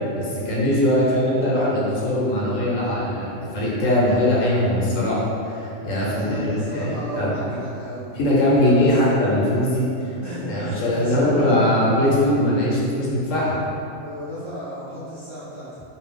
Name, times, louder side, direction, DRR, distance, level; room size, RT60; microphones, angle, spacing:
voice 1, 0.1-7.6 8.1-9.8 10.5-13.6, left 1 dB, 75° left, -6 dB, 1.0 m, -21 dB
voice 2, 6.0-8.9 10.2-12.1 14.0-15.8, equal, 30° right, -14 dB, 0.7 m, -33 dB
2.5 x 2.2 x 3.6 m, 2.7 s
omnidirectional pair, 1.4 m